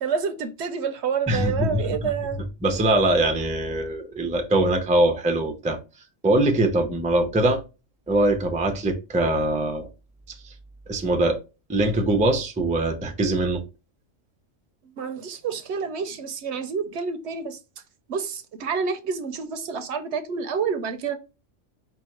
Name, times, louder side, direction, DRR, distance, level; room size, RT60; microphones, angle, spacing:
voice 1, 0.0-2.4 15.0-17.8 18.1-21.2, right 6 dB, 65° right, 0.8 m, -28 dB
voice 2, 1.3-2.1 2.6-5.8 6.2-7.6 8.1-9.9 10.4-10.5 10.9-11.4 11.7-13.6, right 1 dB, 10° right, 0.4 m, -22 dB
4.8 x 2.3 x 4.1 m
omnidirectional pair, 1.3 m